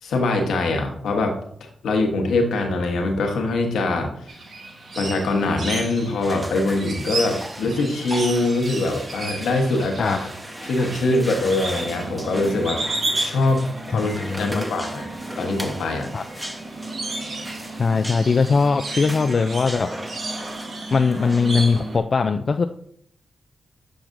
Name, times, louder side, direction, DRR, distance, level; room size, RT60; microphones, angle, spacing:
voice 1, 0.0-4.4 5.0-10.3 10.6-15.1 15.4-16.1, left 2 dB, 90° left, 3 dB, 1.0 m, -23 dB
sound 1, 4.3-22.0, right 2 dB, 70° right, 1.3 m, -33 dB
sound 2, 6.2-21.8, equal, 10° right, 1.0 m, -38 dB
voice 2, 13.9-14.6 16.1-16.2 17.8-19.9 20.9-22.7, left 4 dB, 60° left, 6 dB, 0.3 m, -20 dB
8.8 x 4.9 x 2.6 m, 0.62 s
cardioid pair, 50°, 0 cm